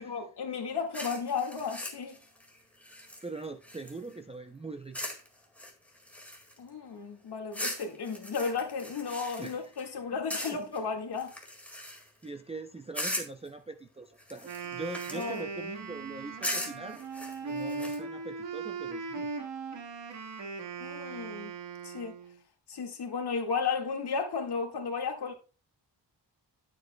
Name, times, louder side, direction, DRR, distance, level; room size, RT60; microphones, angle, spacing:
voice 1, 0.0-2.2 6.6-11.3 15.1-15.4 20.8-21.5 21.8-22.1 22.7-25.3, left 5 dB, 65° left, 1.9 m, -34 dB
sound 1, 0.9-4.2 4.9-5.3 5.6-6.7 7.5-9.9 10.3-10.8 11.2-12.2 12.9-13.5 14.2-15.4 16.4-18.0, left 1 dB, 5° left, 1.9 m, -39 dB
voice 2, 3.2-5.0 9.4-9.6 10.1-10.2 10.5-11.0 12.2-17.0 17.4-19.5, right 3 dB, 15° right, 0.4 m, -42 dB
Wind instrument woodwind instrument, 14.4-22.4, right 4 dB, 80° right, 1.8 m, -39 dB
12.0 x 7.6 x 2.2 m
wide cardioid pair, 150°, 42 cm